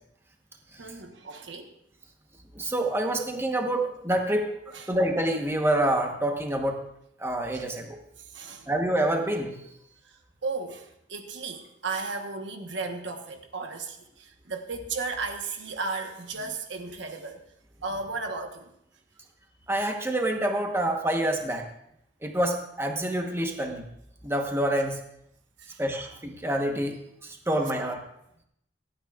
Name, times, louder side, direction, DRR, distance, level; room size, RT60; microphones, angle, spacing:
voice 1, 0.8-1.7 4.7-4.9 7.5-7.6 8.2-8.7 10.1-17.4 17.8-18.7 25.6-25.8, right 4 dB, 65° right, 4 dB, 1.2 m, -35 dB
voice 2, 2.5-4.5 4.9-6.8 7.2-8.0 8.7-9.6 19.7-21.6 22.2-23.8 24.2-25.0 25.8-28.0, right 1 dB, 15° right, 2 dB, 1.1 m, -27 dB
25.5 x 8.9 x 2.5 m, 0.77 s
head